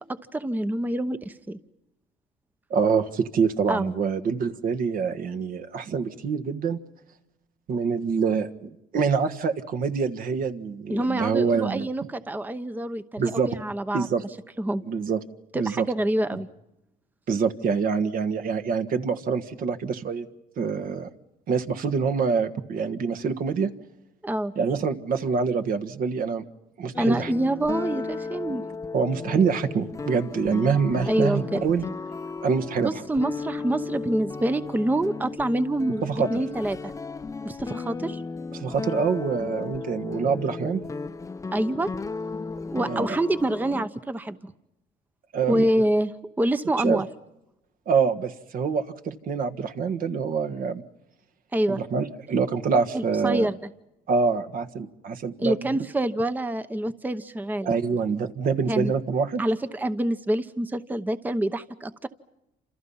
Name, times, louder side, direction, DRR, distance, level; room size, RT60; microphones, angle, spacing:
voice 1, 0.0-1.6 3.7-3.9 10.9-14.1 14.6-14.8 15.5-16.5 24.2-24.5 27.0-28.6 31.1-31.6 32.8-36.9 37.4-38.2 41.5-41.9 42.7-44.5 45.5-46.1 46.4-47.1 51.5-51.8 52.9-53.6 55.4-57.7 58.7-58.9 59.4-62.1, right 1 dB, 10° right, 11 dB, 0.8 m, -26 dB
voice 2, 2.7-6.8 7.7-11.9 13.2-13.5 13.9-14.2 14.8-15.2 15.5-15.8 17.3-20.3 20.6-21.1 21.5-23.7 24.5-26.4 26.8-27.3 28.9-31.8 32.4-32.9 36.0-36.3 38.5-40.8 42.8-43.1 45.3-45.7 46.8-47.0 47.9-50.8 51.7-53.5 54.1-55.7 57.6-59.4, right 5 dB, 55° right, 8 dB, 1.6 m, -25 dB
sound 1, 26.9-43.9, left 4 dB, 20° left, 0.8 m, -35 dB
28.5 x 27.0 x 5.7 m, 0.91 s
cardioid pair, 110°, 17 cm